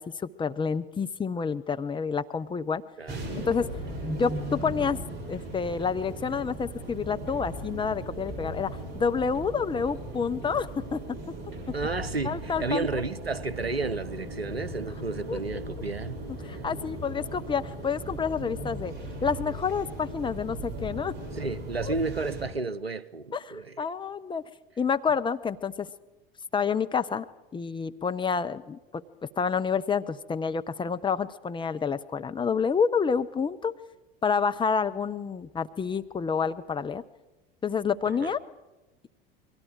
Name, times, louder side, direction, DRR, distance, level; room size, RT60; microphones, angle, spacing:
voice 1, 0.0-2.8 3.4-3.7 4.2-5.0 5.3-11.0 12.2-13.0 15.3-15.4 16.5-18.9 19.2-21.1 21.9-22.0 23.3-24.4 24.8-25.9 26.5-27.2 27.5-33.8 34.2-37.0 37.6-38.4, left 6 dB, 15° left, 0.8 m, -28 dB
voice 2, 3.0-3.3 11.7-16.6 21.3-23.8 38.1-38.3, right 3 dB, 90° right, 0.7 m, -32 dB
sound 1, 3.1-22.5, right 1 dB, 35° right, 7.1 m, -37 dB
29.0 x 22.5 x 4.7 m
figure-of-eight pair, 75°, 30 cm